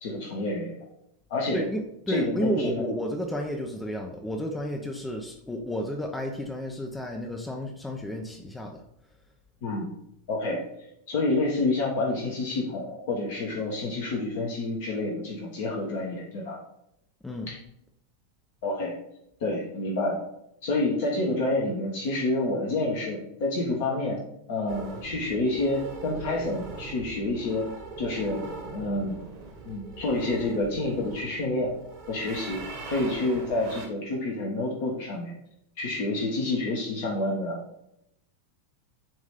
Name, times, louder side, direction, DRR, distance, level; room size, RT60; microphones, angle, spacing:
voice 1, 0.0-0.8 1.3-1.7 2.1-2.8 9.6-9.9 10.3-10.6 11.1-16.6 17.5-17.6 18.6-18.9 19.4-20.2 20.6-24.2 24.5-27.7 28.0-28.4 28.7-29.2 29.6-31.7 32.1-35.3 35.8-37.6, left 2 dB, 50° left, -1 dB, 1.4 m, -28 dB
voice 2, 1.5-8.8 17.2-17.5, equal, 5° left, 2 dB, 0.8 m, -31 dB
sound 1, 24.7-33.9, right 4 dB, 50° right, 1.7 m, -41 dB
8.8 x 3.1 x 5.1 m, 0.78 s
figure-of-eight pair, 90°, 0 cm